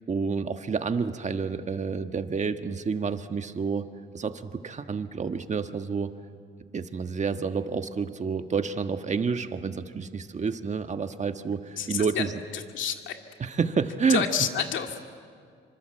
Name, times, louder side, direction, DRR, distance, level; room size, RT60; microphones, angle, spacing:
voice 1, 0.1-3.9 4.1-6.1 6.7-12.3 13.4-14.2, right 5 dB, 35° right, 8 dB, 1.5 m, -29 dB
voice 2, 11.8-13.2 14.1-15.0, left 8 dB, 75° left, 5 dB, 2.2 m, -29 dB
27.0 x 25.5 x 7.9 m, 2.1 s
cardioid pair, 90°, 20 cm